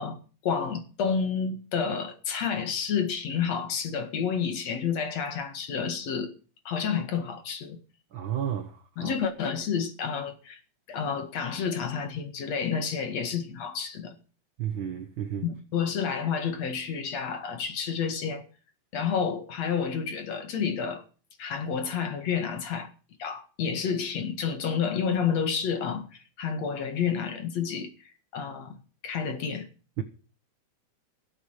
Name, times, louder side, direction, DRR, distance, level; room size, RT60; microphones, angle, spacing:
voice 1, 0.0-6.3 6.7-7.8 9.0-10.6 10.9-14.2 15.4-18.4 18.9-21.0 21.4-22.9 23.2-28.7 29.0-29.7, left 6 dB, 55° left, 2.9 m, -30 dB
voice 2, 8.1-9.1 14.6-15.5 30.0-30.1, right 9 dB, 65° right, 1.2 m, -32 dB
17.5 x 8.2 x 6.6 m
omnidirectional pair, 3.7 m